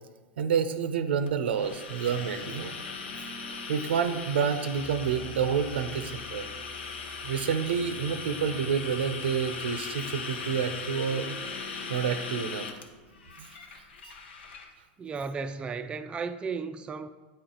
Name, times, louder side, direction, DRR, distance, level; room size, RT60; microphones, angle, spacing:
voice 1, 0.4-2.7 3.7-6.4 7.2-11.4 11.9-12.7 13.4-13.5, right 7 dB, 90° right, 0.6 m, -28 dB
sound 1, 1.3-14.7, left 5 dB, 90° left, 0.8 m, -39 dB
sound 2, 2.1-13.8, left 1 dB, 25° left, 0.9 m, -48 dB
voice 2, 15.0-17.1, right 5 dB, 20° right, 0.3 m, -34 dB
8.9 x 4.4 x 3.9 m
hypercardioid pair, 115°, 6 cm